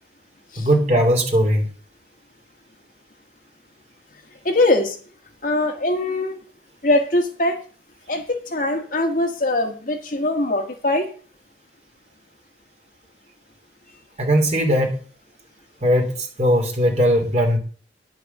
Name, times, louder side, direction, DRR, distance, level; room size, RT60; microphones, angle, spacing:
voice 1, 0.6-1.7 14.2-15.0 15.8-17.6, equal, 40° right, 2 dB, 2.8 m, -19 dB
voice 2, 4.4-5.0 5.4-6.4 6.8-7.6 8.1-11.1, left 2 dB, 50° left, 4 dB, 1.8 m, -21 dB
10.5 x 6.6 x 6.6 m, 0.41 s
head